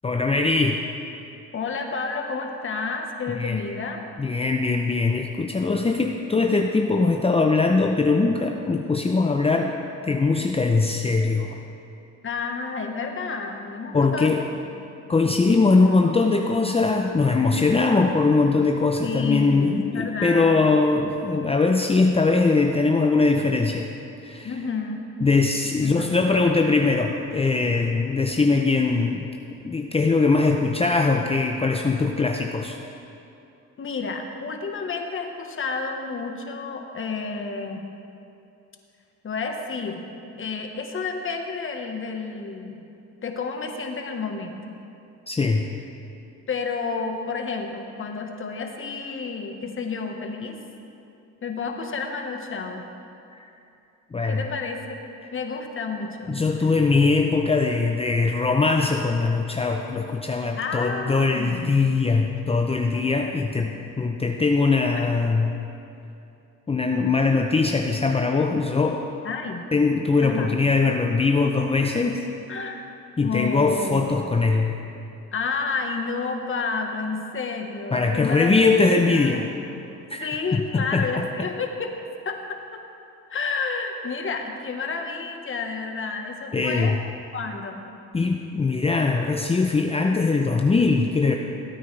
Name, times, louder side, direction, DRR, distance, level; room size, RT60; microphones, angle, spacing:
voice 1, 0.0-0.8 3.3-3.6 4.2-9.8 10.0-11.6 13.9-14.4 15.1-23.9 24.2-24.6 25.2-29.3 29.6-32.8 45.3-45.7 54.1-54.4 56.3-65.6 66.7-69.1 69.7-72.3 73.2-74.8 77.9-79.5 80.1-81.5 86.5-87.0 88.1-91.4, left 3 dB, 20° left, 2 dB, 0.6 m, -21 dB
voice 2, 1.5-4.0 12.2-14.3 19.0-20.6 24.4-25.0 25.8-26.2 33.8-37.8 39.2-40.0 40.4-42.8 43.2-44.7 46.5-50.6 51.4-52.9 54.3-55.0 55.3-56.7 60.6-61.7 62.9-63.1 63.6-63.7 65.0-65.1 69.2-69.6 70.2-70.6 72.5-72.8 73.2-74.2 75.3-79.8 80.2-82.0 82.2-82.8 83.3-87.0 87.3-87.9, left 4 dB, 45° left, 3 dB, 1.3 m, -30 dB
17.5 x 9.0 x 3.4 m, 2.7 s
cardioid pair, 90°, 30 cm